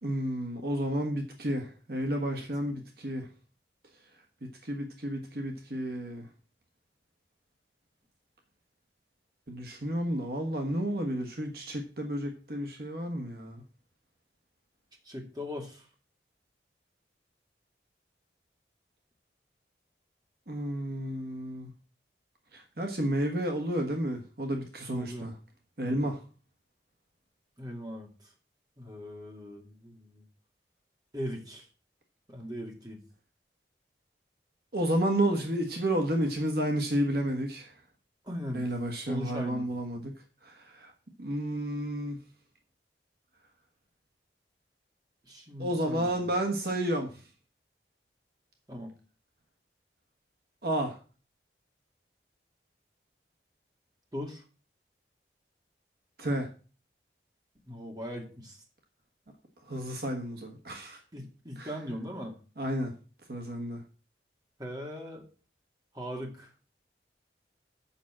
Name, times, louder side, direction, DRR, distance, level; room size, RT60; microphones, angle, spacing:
voice 1, 0.0-3.3 4.4-6.3 9.5-13.6 20.5-21.7 22.5-25.3 25.8-26.2 34.7-37.7 38.5-40.1 40.4-40.9 41.2-42.2 45.6-47.1 50.6-51.0 56.2-56.5 59.7-61.0 61.6-61.7 62.6-63.0 63.3-63.8, right 1 dB, 60° right, 1.4 m, -31 dB
voice 2, 15.0-15.9 25.0-25.3 25.8-26.2 27.6-28.3 28.8-30.2 31.1-31.7 32.3-33.0 38.2-38.7 38.9-39.6 45.2-46.3 48.7-48.9 54.1-54.4 57.7-58.6 61.1-62.3 64.6-65.2 65.9-66.5, equal, 20° right, 2.3 m, -39 dB
7.2 x 5.9 x 7.4 m
head